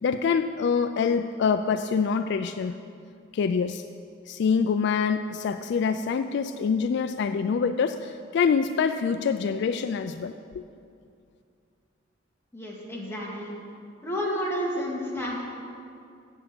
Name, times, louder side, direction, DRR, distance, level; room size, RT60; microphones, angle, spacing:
voice 1, 0.0-2.8 3.3-3.8 4.3-10.6, left 6 dB, 60° left, 9 dB, 0.3 m, -25 dB
voice 2, 12.5-13.5 14.0-15.4, equal, 15° left, -4 dB, 1.9 m, -30 dB
8.1 x 7.7 x 7.6 m, 2.4 s
head